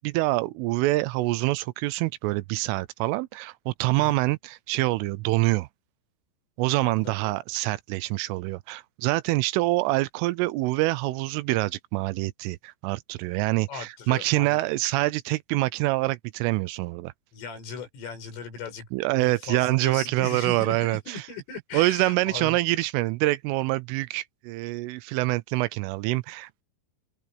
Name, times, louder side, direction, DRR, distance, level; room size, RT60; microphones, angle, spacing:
voice 1, 0.0-5.7 6.6-17.1 18.9-21.2 21.7-26.6, right 20 dB, 85° right, 3.1 m, -26 dB
voice 2, 6.8-7.3 13.7-14.7 17.3-22.6, left 4 dB, 75° left, 9.6 m, -38 dB
open air
omnidirectional pair, 5.9 m